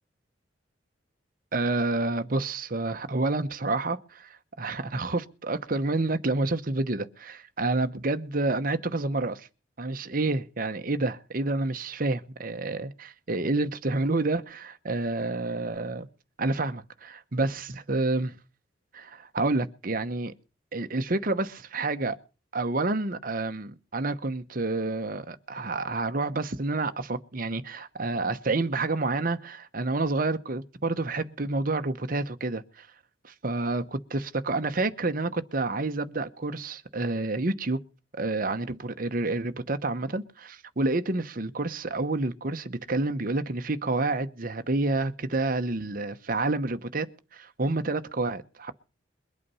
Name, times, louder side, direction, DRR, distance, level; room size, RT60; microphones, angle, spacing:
voice 1, 1.5-9.5 9.8-16.1 16.4-18.4 18.9-20.3 20.7-22.2 22.5-32.9 33.2-37.8 38.1-47.1 47.3-48.7, right 2 dB, 45° right, 0.9 m, -29 dB
22.5 x 8.5 x 5.6 m
head